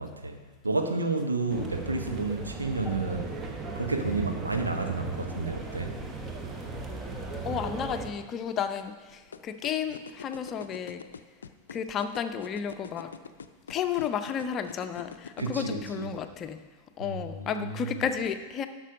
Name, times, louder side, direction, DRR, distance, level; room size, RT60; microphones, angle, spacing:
voice 1, 0.0-3.3 3.7-5.9 15.4-16.1 17.0-18.0, right 3 dB, 80° right, 4 dB, 1.1 m, -31 dB
sound 1, 1.5-8.1, right 3 dB, 20° right, 1.2 m, -37 dB
voice 2, 7.4-11.0 11.7-13.1 13.7-16.6 17.0-18.7, left 7 dB, 30° left, 9 dB, 0.7 m, -32 dB
sound 2, 9.3-15.6, left 6 dB, 70° left, 0.5 m, -42 dB
12.0 x 6.1 x 5.2 m, 1.3 s
figure-of-eight pair, 90°, 0 cm